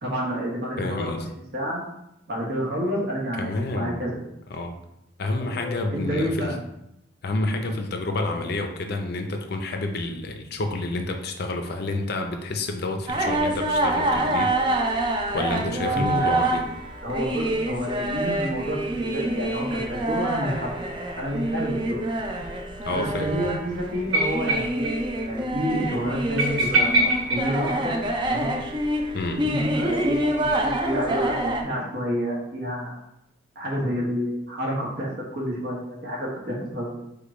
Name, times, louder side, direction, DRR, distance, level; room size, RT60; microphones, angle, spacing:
voice 1, 0.0-1.2 1.5-1.8 2.3-4.1 5.9-6.6 15.6-16.6 17.0-22.0 22.9-28.0 28.3-28.5 29.4-32.9 33.5-37.1, equal, 55° right, -3 dB, 1.3 m, -29 dB
voice 2, 0.8-1.3 3.4-4.0 4.5-4.8 5.2-6.5 7.2-14.5 15.3-16.6 22.8-23.4 29.1-29.4, left 2 dB, 50° left, 5 dB, 0.5 m, -29 dB
sound 1, 13.1-31.6, right 1 dB, 25° right, 0.4 m, -27 dB
sound 2, 24.1-25.0 25.2-25.3 25.6-25.7 26.4-28.4 29.9-31.2, right 1 dB, 85° right, 1.1 m, -25 dB
5.0 x 2.3 x 4.2 m, 0.82 s
head